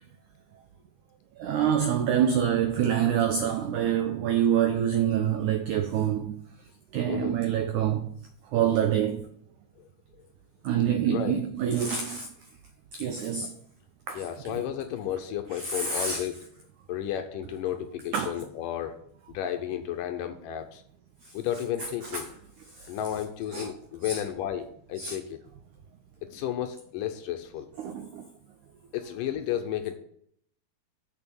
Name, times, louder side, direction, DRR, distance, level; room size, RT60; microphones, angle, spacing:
voice 1, 1.4-6.4 6.9-8.1 8.5-9.2 10.6-12.3 12.9-13.5 14.1-14.6 15.5-16.3 18.1-18.4 22.1-22.2 23.5-23.7 24.0-24.2 25.0-25.2 27.8-28.3, right 9 dB, 85° right, 1.7 m, -26 dB
voice 2, 14.1-16.4 16.9-18.9 19.3-20.8 21.3-22.3 22.9-25.4 26.2-27.7 28.9-30.0, left 10 dB, 75° left, 2.1 m, -32 dB
6.7 x 6.3 x 6.9 m
omnidirectional pair, 4.3 m